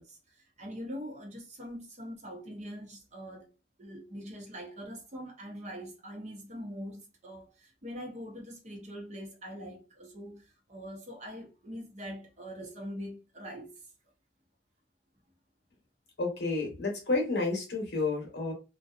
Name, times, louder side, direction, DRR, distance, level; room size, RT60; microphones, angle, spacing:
voice 1, 0.0-3.5 3.8-13.7, equal, 40° right, 0.8 m, -43 dB
voice 2, 16.2-18.5, left 3 dB, 60° left, 0.9 m, -30 dB
2.6 x 2.2 x 2.4 m
head